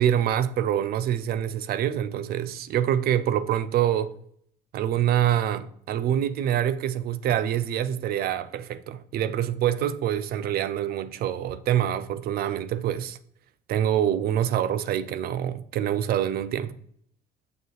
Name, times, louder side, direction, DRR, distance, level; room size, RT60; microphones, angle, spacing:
voice 1, 0.0-4.1 4.7-13.2 13.7-16.7, right 10 dB, 65° right, 0.5 m, -25 dB
6.7 x 6.7 x 3.1 m
cardioid pair, 110°, 17 cm